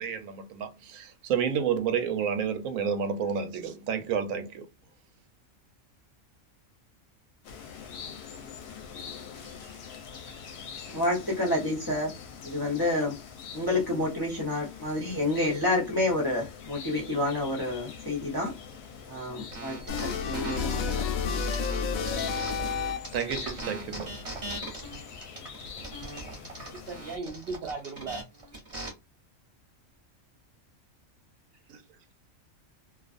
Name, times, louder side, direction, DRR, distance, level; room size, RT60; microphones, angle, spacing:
voice 1, 0.0-4.7 23.1-24.2 31.7-31.8, right 7 dB, 80° right, 1.0 m, -30 dB
sound 1, 7.4-27.2, left 6 dB, 60° left, 0.8 m, -44 dB
voice 2, 10.9-12.1 12.4-13.1 13.5-18.5 19.1-21.0, left 2 dB, 25° left, 0.6 m, -29 dB
sound 2, 19.5-22.8 23.0-28.9, right 2 dB, 30° right, 0.8 m, -40 dB
sound 3, 19.9-23.3, left 6 dB, 90° left, 1.0 m, -30 dB
voice 3, 26.7-28.2, right 4 dB, 65° right, 0.6 m, -37 dB
2.4 x 2.3 x 2.4 m
omnidirectional pair, 1.4 m